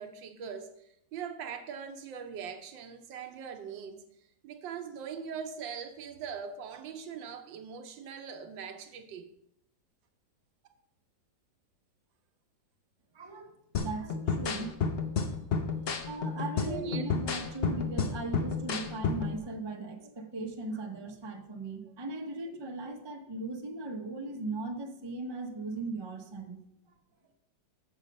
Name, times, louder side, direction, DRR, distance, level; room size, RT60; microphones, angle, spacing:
voice 1, 0.0-4.1 4.4-9.3 16.7-17.1, right 7 dB, 80° right, 1.6 m, -41 dB
voice 2, 13.1-14.9 15.4-15.5 16.1-26.6, right 3 dB, 30° right, 0.4 m, -38 dB
sound 1, 13.7-19.4, left 5 dB, 85° left, 0.5 m, -32 dB
7.1 x 6.6 x 5.3 m
omnidirectional pair, 2.0 m